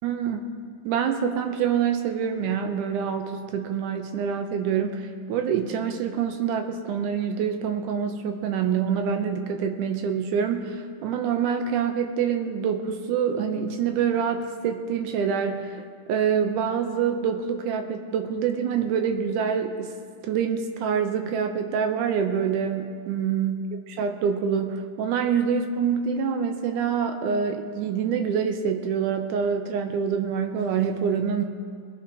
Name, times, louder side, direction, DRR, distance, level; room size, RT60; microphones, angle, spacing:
voice 1, 0.0-0.5 0.8-20.0 20.2-23.6 23.9-31.4, right 7 dB, 80° right, 5 dB, 2.2 m, -26 dB
21.5 x 9.8 x 2.9 m, 2.3 s
omnidirectional pair, 3.7 m